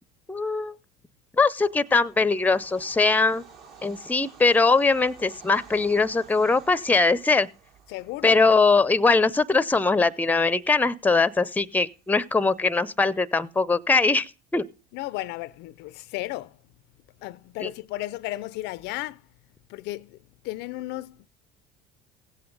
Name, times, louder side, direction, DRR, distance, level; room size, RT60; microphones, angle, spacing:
voice 1, 0.3-0.7 1.4-3.4 3.8-7.5 8.2-14.3 14.5-14.6 17.6-17.7, left 3 dB, 10° left, 0.6 m, -21 dB
Bird vocalization bird call bird song / Train, 1.6-12.8, right 6 dB, 60° right, 2.8 m, -52 dB
voice 2, 7.9-8.4 14.9-16.6 17.2-19.2 19.7-20.2 20.4-21.3, left 17 dB, 65° left, 0.4 m, -34 dB
16.5 x 7.9 x 3.8 m
hypercardioid pair, 80°, 20 cm